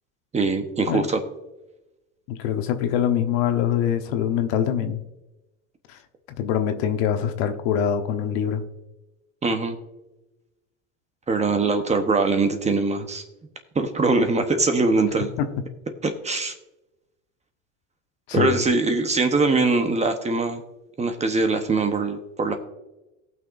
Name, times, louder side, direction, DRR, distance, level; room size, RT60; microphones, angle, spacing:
voice 1, 0.3-1.2 9.4-9.8 11.3-13.2 13.7-15.3 16.0-16.5 18.3-20.6 21.0-22.6, right 3 dB, 20° right, 7 dB, 1.0 m, -22 dB
voice 2, 2.3-5.0 5.9-6.0 6.4-8.6 15.4-15.5 18.3-18.6, left 9 dB, 65° left, 7 dB, 1.2 m, -24 dB
18.0 x 6.2 x 2.6 m, 0.99 s
supercardioid pair, 120°, 37 cm